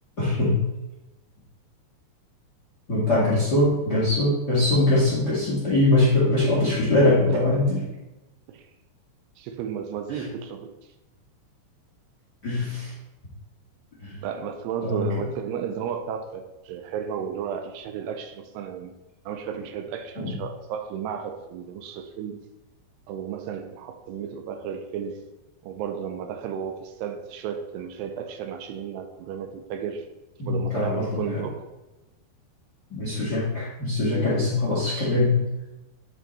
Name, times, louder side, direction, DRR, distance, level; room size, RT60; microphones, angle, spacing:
voice 1, 0.2-0.6 2.9-7.8 10.1-10.2 12.4-12.9 14.0-14.2 14.8-15.1 20.2-20.4 30.4-31.2 32.9-35.4, left 2 dB, 45° left, -6 dB, 1.3 m, -22 dB
voice 2, 7.3-7.6 8.5-8.7 9.4-10.7 14.2-18.9 19.3-22.4 23.1-25.2 25.6-30.1 30.5-31.7, right 7 dB, 80° right, 7 dB, 2.5 m, -33 dB
9.3 x 5.7 x 4.2 m, 1.0 s
omnidirectional pair, 5.3 m